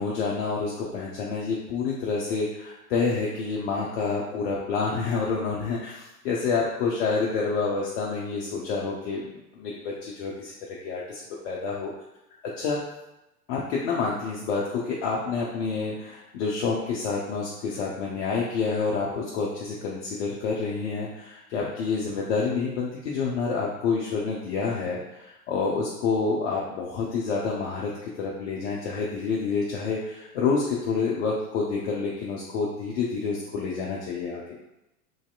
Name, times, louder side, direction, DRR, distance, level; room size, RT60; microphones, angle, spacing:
voice 1, 0.0-11.9 12.4-12.8 13.5-27.9 28.2-34.4, left 4 dB, 50° left, -4 dB, 0.6 m, -28 dB
3.1 x 2.7 x 2.2 m, 0.91 s
figure-of-eight pair, 95°, 47 cm